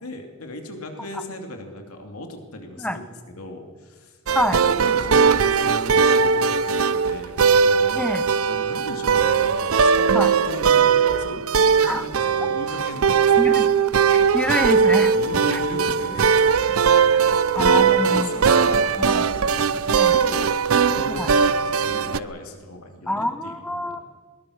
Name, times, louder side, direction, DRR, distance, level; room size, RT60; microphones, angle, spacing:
voice 1, 0.0-3.1 3.4-4.2 4.7-8.1 8.5-13.5 15.1-16.5 16.8-23.9, left 1 dB, 85° left, 4 dB, 2.8 m, -37 dB
sound 1, 4.3-22.2, right 6 dB, 75° right, 0.6 m, -19 dB
voice 2, 13.4-13.7 14.3-15.1 15.5-15.6 17.5-18.3 19.0-19.4 19.9-20.2 21.2-21.3 23.1-24.0, left 1 dB, 5° left, 10 dB, 0.9 m, -26 dB
21.5 x 20.0 x 6.5 m, 1.5 s
head